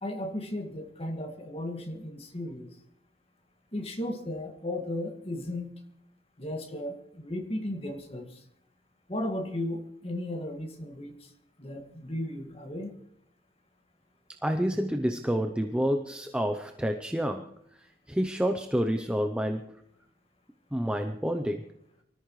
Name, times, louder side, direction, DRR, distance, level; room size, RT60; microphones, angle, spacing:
voice 1, 0.0-2.7 3.7-5.7 6.4-8.4 9.1-11.1 11.6-12.9, left 1 dB, 30° left, 3 dB, 2.1 m, -35 dB
voice 2, 14.4-17.5 18.1-19.8 20.7-21.7, equal, 5° right, 5 dB, 0.7 m, -28 dB
24.5 x 14.0 x 3.2 m, 0.73 s
head